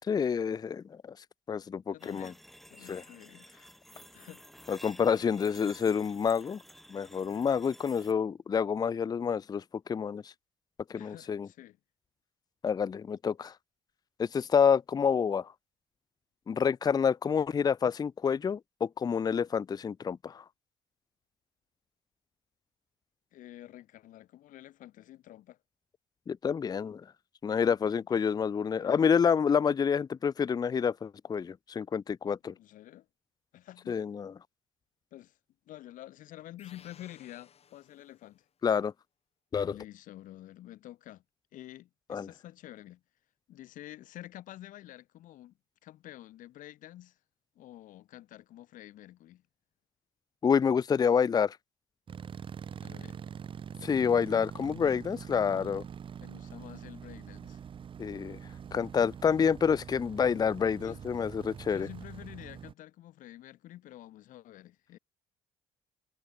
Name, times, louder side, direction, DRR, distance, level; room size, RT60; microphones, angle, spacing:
voice 1, 0.1-0.8 1.5-2.3 2.9-3.0 4.7-6.6 6.9-9.6 9.9-10.3 10.9-11.5 12.6-13.5 14.2-15.5 16.5-20.4 26.3-27.0 27.4-32.5 33.9-34.3 38.6-38.9 39.5-39.8 42.1-42.3 50.4-51.6 53.8-55.8 58.0-58.4 58.7-61.9, left 6 dB, 30° left, 0.5 m, -28 dB
voice 2, 1.9-2.4 2.7-3.5 4.1-4.4 10.9-11.8 23.3-25.6 27.7-28.2 28.7-29.2 32.5-33.1 33.5-34.0 35.1-35.4 35.7-38.5 39.6-41.2 41.5-43.0 43.5-45.6 45.8-47.2 47.6-49.4 52.8-53.2 56.2-57.6 60.8-61.0 61.6-65.0, left 14 dB, 70° left, 1.8 m, -49 dB
sound 1, 2.0-8.1, equal, ahead, 2.0 m, -53 dB
sound 2, 36.6-38.5, left 7 dB, 45° left, 5.1 m, -58 dB
sound 3, 52.1-62.7, right 7 dB, 40° right, 0.6 m, -44 dB
supercardioid pair, 80°, 14 cm